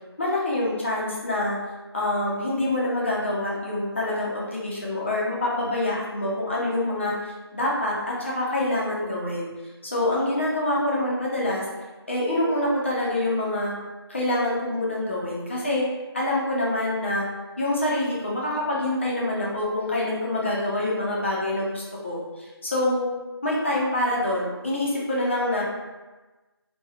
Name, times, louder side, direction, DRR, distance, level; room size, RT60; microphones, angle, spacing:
voice 1, 0.2-1.6 1.9-9.5 9.8-11.7 12.1-13.7 14.1-15.9 16.1-17.3 17.6-23.1 23.4-25.6, left 1 dB, 25° left, -5 dB, 0.7 m, -26 dB
4.2 x 2.3 x 3.7 m, 1.2 s
figure-of-eight pair, 165°, 14 cm